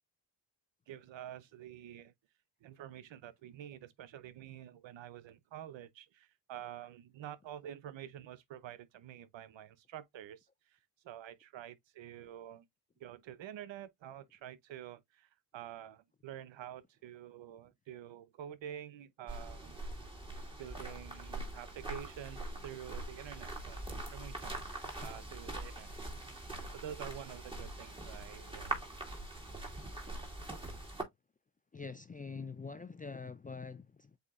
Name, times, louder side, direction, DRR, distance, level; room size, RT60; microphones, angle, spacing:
voice 1, 0.9-2.1 2.6-10.8 11.0-12.6 13.0-20.1 20.6-25.9 26.7-28.7, right 11 dB, 65° right, 0.8 m, -48 dB
sound 1, 19.3-31.0, right 2 dB, 10° right, 2.1 m, -43 dB
voice 2, 31.7-34.2, left 4 dB, 20° left, 0.3 m, -45 dB
8.0 x 2.7 x 2.4 m
cardioid pair, 90°, 48 cm